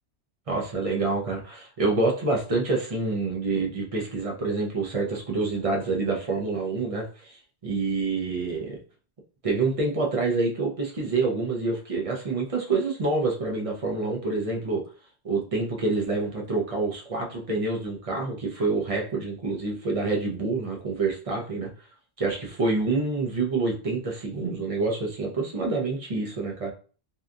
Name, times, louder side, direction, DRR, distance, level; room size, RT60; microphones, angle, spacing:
voice 1, 0.5-8.8 9.4-14.8 15.2-21.7 22.2-26.7, right 3 dB, 40° right, 0 dB, 0.6 m, -27 dB
2.7 x 2.2 x 2.5 m, 0.39 s
omnidirectional pair, 1.1 m